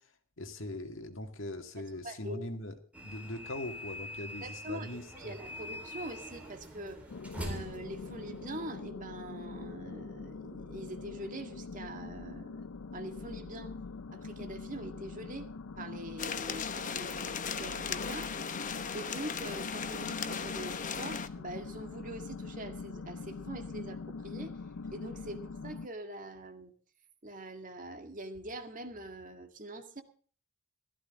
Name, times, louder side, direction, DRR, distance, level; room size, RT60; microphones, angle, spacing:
voice 1, 0.4-5.4, left 1 dB, 65° left, 6 dB, 2.1 m, -41 dB
voice 2, 1.8-2.4 4.4-7.0 7.4-12.6 12.9-13.7 14.1-18.3 18.9-24.6 24.9-26.7 27.2-30.0, right 1 dB, 40° right, 6 dB, 2.1 m, -44 dB
sound 1, 2.9-8.8, left 1 dB, 5° right, 4.1 m, -44 dB
sound 2, 7.1-25.9, left 4 dB, 80° left, 0.6 m, -43 dB
sound 3, 16.2-21.3, left 6 dB, 40° left, 0.9 m, -37 dB
16.0 x 14.0 x 3.7 m, 0.42 s
head